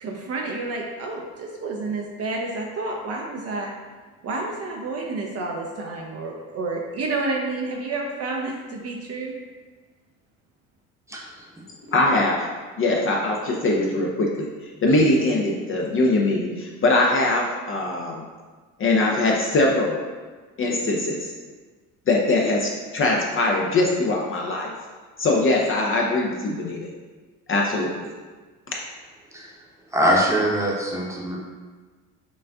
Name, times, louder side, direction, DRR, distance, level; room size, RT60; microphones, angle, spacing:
voice 1, 0.0-3.7 4.2-9.3, right 3 dB, 35° right, 0 dB, 0.6 m, -30 dB
voice 2, 11.1-11.4 29.3-29.5 29.9-31.4, equal, 5° right, -3 dB, 0.9 m, -23 dB
voice 3, 11.9-12.4 12.8-14.5 14.8-18.2 18.8-20.0 20.6-21.3 22.1-24.7 25.2-26.9 27.5-27.9, left 2 dB, 30° left, -1 dB, 0.6 m, -22 dB
5.9 x 2.4 x 2.3 m, 1.4 s
hypercardioid pair, 65°, 42 cm